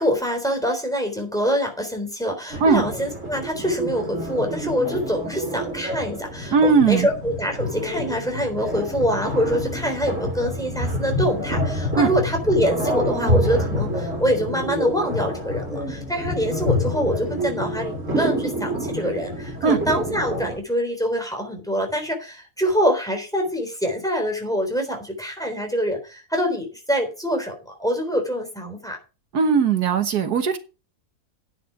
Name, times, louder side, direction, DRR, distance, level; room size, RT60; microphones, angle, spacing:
voice 1, 0.0-29.0, equal, ahead, 3 dB, 3.7 m, -25 dB
sound 1, 2.5-20.6, left 1 dB, 50° right, 4.3 m, -27 dB
voice 2, 6.5-7.1 12.0-12.1 19.6-19.8 29.3-30.6, right 5 dB, 75° right, 8 dB, 1.7 m, -18 dB
11.0 x 9.3 x 4.7 m, 0.32 s
omnidirectional pair, 1.7 m